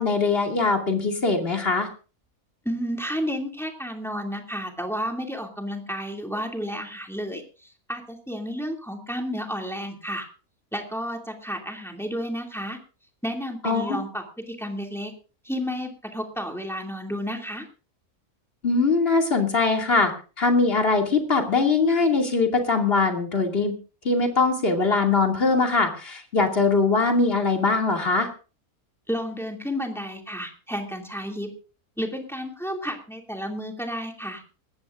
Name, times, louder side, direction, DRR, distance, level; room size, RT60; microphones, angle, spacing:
voice 1, 0.0-1.9 13.6-14.0 18.6-23.7 24.0-28.3, left 3 dB, 40° left, 3 dB, 2.7 m, -22 dB
voice 2, 2.6-7.4 7.9-10.2 10.7-12.8 13.2-15.1 15.4-17.6 29.1-31.5 32.0-34.4, equal, ahead, 2 dB, 2.5 m, -31 dB
20.5 x 15.0 x 2.5 m, 0.35 s
omnidirectional pair, 1.6 m